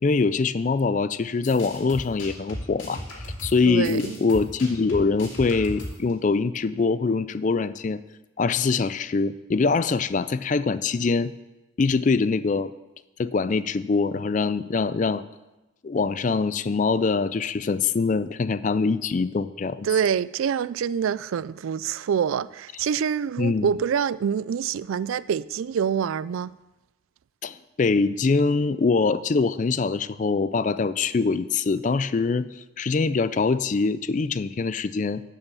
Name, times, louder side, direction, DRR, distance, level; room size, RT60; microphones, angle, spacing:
voice 1, 0.0-8.0 8.4-11.3 11.8-12.7 13.2-15.2 15.8-19.9 23.4-23.7 27.4-35.2, left 4 dB, 40° left, 0.3 m, -24 dB
sound 1, 1.3-6.1, equal, 70° left, 2.7 m, -36 dB
voice 2, 3.7-4.2 19.8-26.5, right 7 dB, 85° right, 0.3 m, -26 dB
11.0 x 5.7 x 6.9 m
head